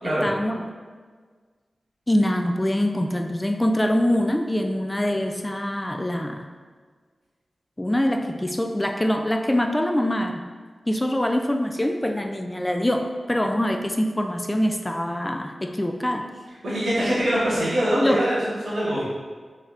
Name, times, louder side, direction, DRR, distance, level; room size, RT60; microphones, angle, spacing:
voice 1, 0.0-0.7 2.1-6.4 7.8-10.4 10.9-16.3 18.0-18.2, left 1 dB, 15° left, 3 dB, 0.3 m, -24 dB
voice 2, 16.6-19.0, equal, 90° right, -11 dB, 1.5 m, -23 dB
4.0 x 3.3 x 2.5 m, 1.6 s
cardioid pair, 55°, 0 cm